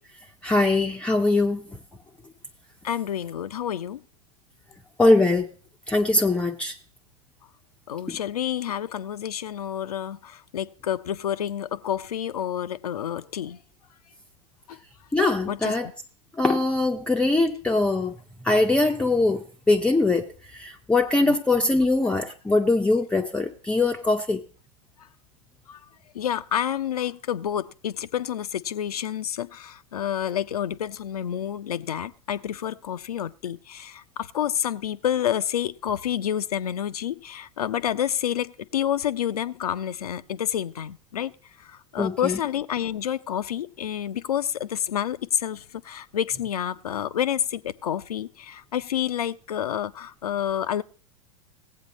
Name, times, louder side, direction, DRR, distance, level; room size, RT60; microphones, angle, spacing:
voice 1, 0.4-1.6 5.0-5.5 5.9-6.8 8.1-8.2 15.1-15.9 16.4-18.1 18.4-24.4 42.0-42.4, left 2 dB, 5° left, 0.4 m, -22 dB
voice 2, 2.8-4.0 7.9-13.6 14.7-14.8 15.5-15.9 21.2-21.4 25.7-25.8 26.1-41.3 41.6-50.8, left 10 dB, 75° left, 0.4 m, -29 dB
17.5 x 8.0 x 4.1 m
figure-of-eight pair, 95°, 19 cm